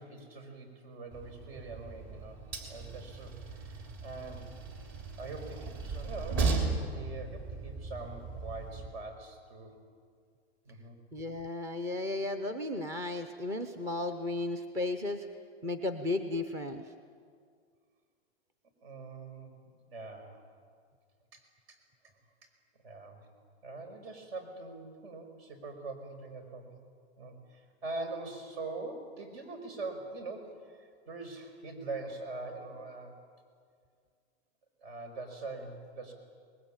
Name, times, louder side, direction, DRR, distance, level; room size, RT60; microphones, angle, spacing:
voice 1, 0.0-2.4 2.7-4.5 5.2-9.7 10.7-11.0 14.2-14.3 18.8-19.5 19.9-20.4 21.3-21.4 21.7-21.8 22.8-23.3 23.6-26.8 27.2-33.2 34.8-36.1, right 3 dB, 65° right, 6 dB, 5.4 m, -43 dB
Train, 1.1-8.9, right 4 dB, 35° right, 3.4 m, -36 dB
voice 2, 11.1-15.3 15.6-16.8, left 2 dB, 10° right, 9 dB, 0.6 m, -34 dB
23.0 x 20.5 x 8.8 m, 2.1 s
supercardioid pair, 160°, 33 cm